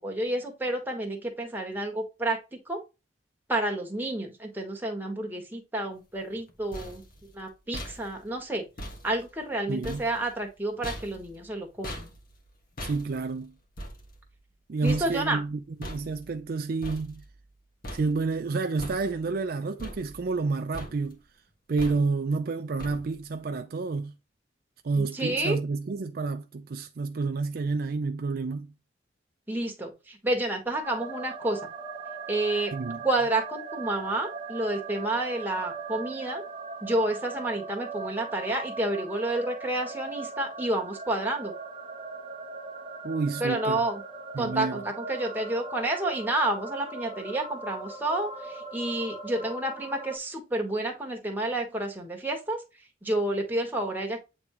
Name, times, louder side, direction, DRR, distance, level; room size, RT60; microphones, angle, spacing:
voice 1, 0.0-2.4 2.7-2.8 3.5-7.0 7.3-8.7 9.0-12.1 14.8-15.4 25.0-25.6 29.5-31.7 32.3-32.7 33.0-36.4 36.8-41.5 43.4-44.0 44.4-52.6 53.0-54.2, right 1 dB, 10° right, 1.5 m, -30 dB
sound 1, 6.3-17.6 17.8-18.4 18.8-19.4 19.8-20.5 20.7-21.3 21.8-22.3 22.8-23.3, equal, 50° left, 1.5 m, -43 dB
voice 2, 9.7-10.0 12.8-13.5 14.7-17.2 17.9-21.2 21.7-24.1 24.8-28.7 32.7-33.0 43.0-43.8 44.3-44.8, right 4 dB, 50° right, 0.4 m, -29 dB
sound 2, 30.8-50.2, right 4 dB, 25° right, 0.9 m, -39 dB
8.6 x 3.5 x 3.1 m
head